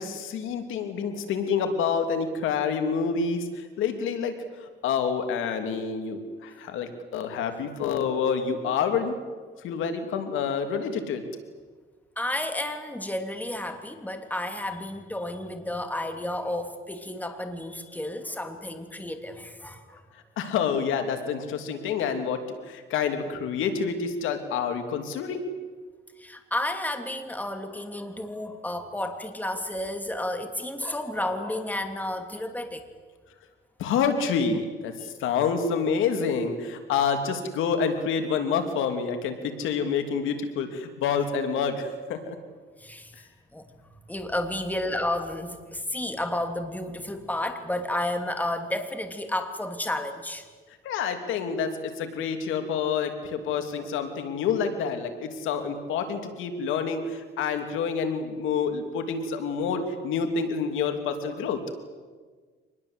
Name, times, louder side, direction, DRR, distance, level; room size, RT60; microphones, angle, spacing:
voice 1, 0.0-4.3 4.6-9.1 9.6-11.2 20.4-25.4 33.8-42.4 50.8-61.6, left 6 dB, 90° left, 6 dB, 2.9 m, -28 dB
voice 2, 12.2-20.0 26.2-32.8 42.8-43.1 43.5-43.6 44.1-50.4, left 1 dB, 10° left, 6 dB, 2.7 m, -31 dB
25.5 x 20.5 x 8.1 m, 1.5 s
cardioid pair, 90°, 20 cm